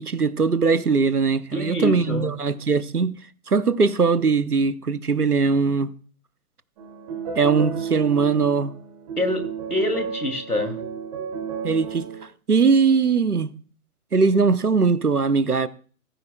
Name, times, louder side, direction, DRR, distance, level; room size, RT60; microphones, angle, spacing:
voice 1, 0.0-3.1 3.5-5.9 7.3-8.7 11.6-12.1 12.5-13.5 14.1-15.7, right 5 dB, 85° right, 1.0 m, -20 dB
voice 2, 1.5-2.3 9.2-10.8, left 1 dB, 85° left, 2.7 m, -26 dB
sound 1, 6.8-12.2, right 6 dB, 25° right, 2.3 m, -33 dB
16.5 x 14.0 x 2.3 m
figure-of-eight pair, 135°, 44 cm